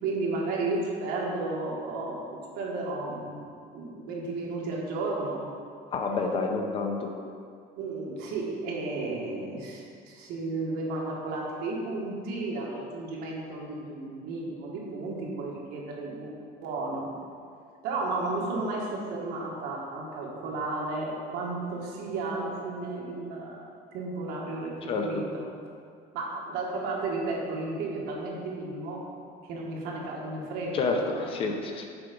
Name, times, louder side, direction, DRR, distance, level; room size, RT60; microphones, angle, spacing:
voice 1, 0.0-2.2 2.5-5.5 7.8-16.3 16.6-17.1 17.8-23.6 23.9-25.5 26.1-29.0 29.4-31.5, right 3 dB, 65° right, -3 dB, 1.6 m, -33 dB
voice 2, 5.9-7.1 24.9-25.3 30.7-31.9, left 3 dB, 35° left, 3 dB, 0.6 m, -29 dB
6.9 x 4.6 x 5.2 m, 2.3 s
cardioid pair, 170°, 17 cm